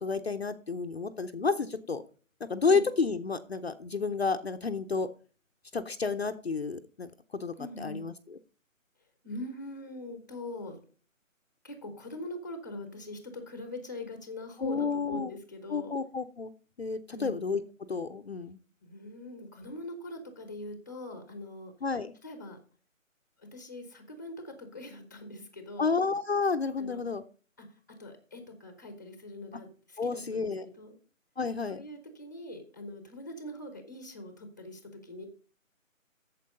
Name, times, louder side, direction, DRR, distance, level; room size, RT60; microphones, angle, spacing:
voice 1, 0.0-2.0 2.5-5.1 5.7-8.1 14.6-15.3 15.7-16.5 16.8-17.6 17.9-18.6 21.8-22.1 25.8-27.2 30.0-30.7 31.4-31.8, left 4 dB, 50° left, 8 dB, 0.7 m, -30 dB
voice 2, 7.6-8.1 9.2-10.8 11.6-15.9 17.1-17.3 18.8-21.7 22.2-22.6 23.4-25.9 26.8-27.0 27.6-30.5 30.8-31.0 31.7-35.3, left 1 dB, 15° left, 7 dB, 0.9 m, -42 dB
8.5 x 7.3 x 5.3 m, 0.38 s
figure-of-eight pair, 170°, 40 cm